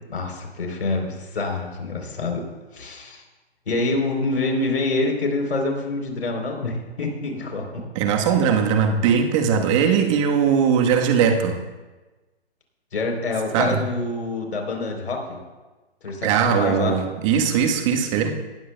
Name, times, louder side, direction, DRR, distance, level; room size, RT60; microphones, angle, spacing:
voice 1, 0.1-2.4 2.7-3.2 3.7-7.8 12.9-15.4 16.0-17.0, left 2 dB, 70° left, 2 dB, 3.7 m, -26 dB
voice 2, 7.9-11.6 13.5-13.8 16.2-18.3, right 7 dB, 30° right, 3 dB, 1.3 m, -20 dB
18.5 x 12.5 x 2.3 m, 1.2 s
hypercardioid pair, 140°, 33 cm